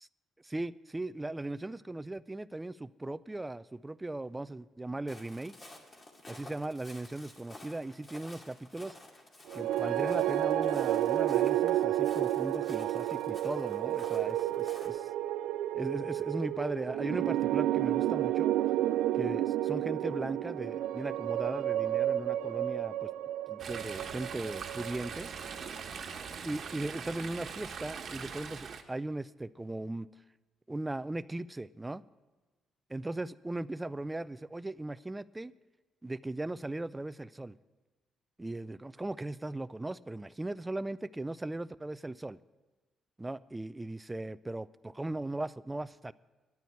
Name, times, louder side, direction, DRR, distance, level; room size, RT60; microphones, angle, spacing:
voice 1, 0.4-5.5 6.3-8.9 9.5-15.1 15.7-18.5 19.2-23.1 23.5-25.3 26.4-30.1 30.7-32.0 32.9-35.5 36.0-37.5 38.4-42.4 43.2-46.1, right 2 dB, 15° right, 15 dB, 0.3 m, -38 dB
Walk footsteps, 5.1-14.9, left 1 dB, 35° left, 2.3 m, -52 dB
sound 1, 9.5-25.8, right 13 dB, 90° right, 0.4 m, -31 dB
Chatter / Stream, 23.6-28.8, right 6 dB, 55° right, 1.2 m, -42 dB
11.0 x 9.1 x 8.3 m, 1.2 s
cardioid pair, 90°, 0 cm